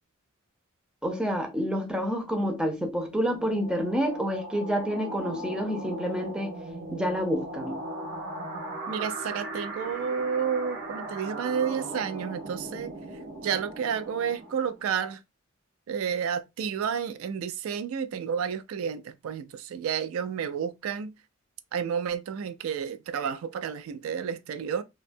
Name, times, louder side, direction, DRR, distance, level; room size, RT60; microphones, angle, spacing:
voice 1, 1.0-6.6 6.9-7.8, equal, 5° right, 0.4 m, -28 dB
sound 1, 2.3-14.9, right 2 dB, 55° right, 0.7 m, -38 dB
voice 2, 8.9-12.9 13.4-15.2 15.9-21.1 21.7-24.8, right 7 dB, 85° right, 0.3 m, -31 dB
2.6 x 2.2 x 2.5 m
head